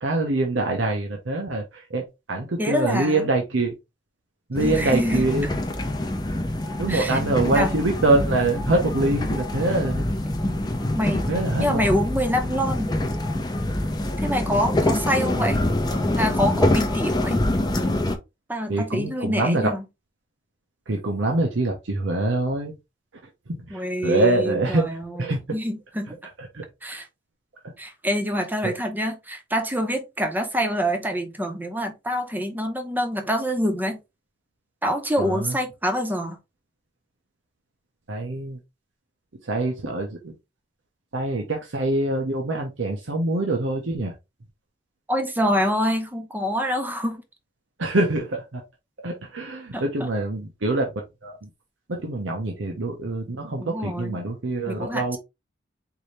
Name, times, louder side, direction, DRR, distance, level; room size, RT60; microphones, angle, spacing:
voice 1, 0.0-2.0 2.3-3.7 4.5-5.6 6.8-10.1 11.3-12.0 14.3-14.4 18.7-19.7 20.9-22.7 23.5-25.4 26.4-26.6 28.6-28.7 35.2-35.6 38.1-38.6 39.4-40.3 41.1-44.1 47.8-48.6 49.0-50.9 51.2-51.5 51.9-55.2, right 2 dB, 90° right, 0.9 m, -25 dB
voice 2, 2.6-3.3 4.6-5.5 6.9-7.2 7.5-7.7 10.9-11.3 11.6-12.9 14.2-15.6 16.2-17.4 18.5-19.8 23.7-26.2 26.8-27.1 27.8-34.0 34.8-36.4 45.1-47.2 49.7-50.1 53.6-54.2 54.7-55.2, equal, 10° right, 0.8 m, -26 dB
sound 1, 4.5-18.2, left 1 dB, 20° left, 0.6 m, -25 dB
4.7 x 2.7 x 3.2 m
head